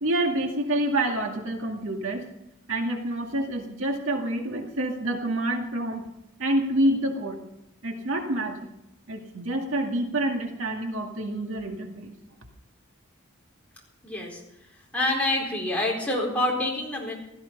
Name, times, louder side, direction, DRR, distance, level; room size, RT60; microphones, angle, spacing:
voice 1, 0.0-2.2 2.7-6.1 6.4-7.4 7.8-8.7 9.1-12.1, right 1 dB, 70° right, 2 dB, 2.2 m, -27 dB
voice 2, 14.0-14.4 14.9-17.2, left 1 dB, 5° left, -3 dB, 4.4 m, -26 dB
16.5 x 14.0 x 5.4 m, 0.84 s
head